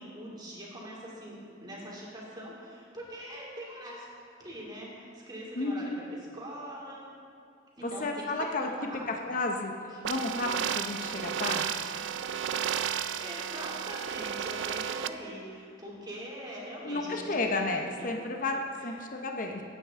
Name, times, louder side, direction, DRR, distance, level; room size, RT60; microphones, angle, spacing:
voice 1, 0.0-4.1 4.4-5.9 6.3-7.1 7.8-8.3 8.6-9.0 12.9-17.7 18.0-18.1 18.7-18.9, equal, 25° right, -5 dB, 2.8 m, -43 dB
voice 2, 5.6-6.0 7.8-8.7 9.1-9.7 10.0-11.8 16.8-19.6, left 2 dB, 50° left, 3 dB, 0.8 m, -32 dB
sound 1, 10.0-15.1, right 8 dB, 85° right, 0.4 m, -33 dB
16.5 x 9.1 x 3.7 m, 2.5 s
head